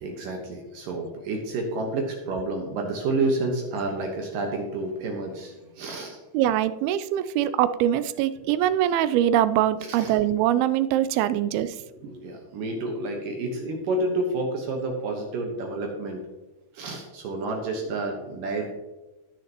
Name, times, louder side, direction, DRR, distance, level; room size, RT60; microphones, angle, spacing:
voice 1, 0.0-6.2 9.9-10.1 12.0-16.2 16.7-18.7, right 2 dB, 70° right, 1 dB, 2.6 m, -29 dB
voice 2, 6.3-11.8, right 11 dB, 85° right, 14 dB, 2.4 m, -23 dB
18.0 x 6.4 x 2.9 m, 1.1 s
omnidirectional pair, 4.4 m